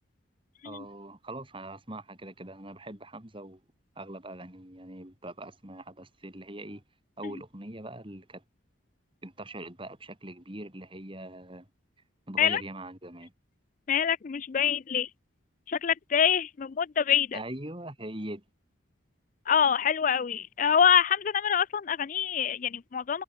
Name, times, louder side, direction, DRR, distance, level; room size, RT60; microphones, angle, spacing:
voice 1, 0.6-3.6 4.0-6.8 7.2-8.4 9.2-11.7 12.3-13.3 17.3-18.4, right 1 dB, 25° right, 2.7 m, -42 dB
voice 2, 13.9-15.1 15.7-17.4 19.5-23.2, left 8 dB, 40° left, 0.3 m, -25 dB
head